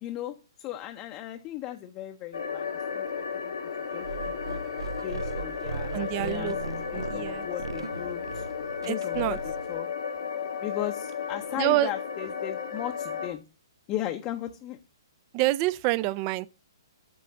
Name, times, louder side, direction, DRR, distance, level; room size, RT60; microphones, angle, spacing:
voice 1, 0.0-3.1 3.3-3.5 3.9-4.6 5.0-8.5 8.8-9.9 10.6-13.4 13.9-14.8, left 13 dB, 25° left, 0.6 m, -37 dB
sound 1, 2.3-13.3, left 6 dB, 75° left, 0.9 m, -34 dB
sound 2, 4.0-9.8, right 5 dB, 80° right, 0.5 m, -38 dB
voice 2, 5.9-6.6 6.9-7.5 8.9-9.4 11.5-11.9 15.3-16.5, right 18 dB, 30° right, 0.3 m, -27 dB
8.4 x 3.1 x 6.4 m
hypercardioid pair, 140°, 2 cm